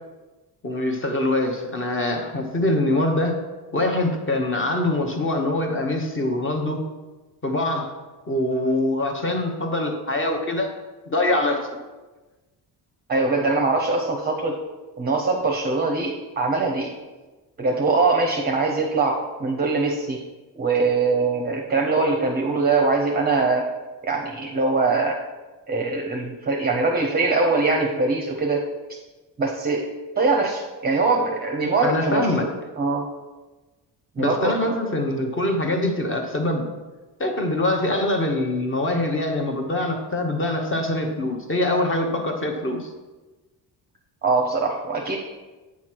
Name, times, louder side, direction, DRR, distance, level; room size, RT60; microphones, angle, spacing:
voice 1, 0.6-3.4 3.7-6.8 7.4-7.9 8.3-10.7 11.1-11.7 31.8-32.5 34.2-36.7 37.2-42.9, left 1 dB, 30° left, 3 dB, 1.0 m, -24 dB
voice 2, 13.1-14.6 15.0-16.9 17.6-20.2 20.6-23.7 24.0-25.2 25.7-28.7 29.4-29.9 30.2-32.5 32.8-33.1 34.2-34.7 44.2-45.2, right 3 dB, 25° right, 2 dB, 0.6 m, -22 dB
8.4 x 3.1 x 6.0 m, 1.2 s
cardioid pair, 145°, 42 cm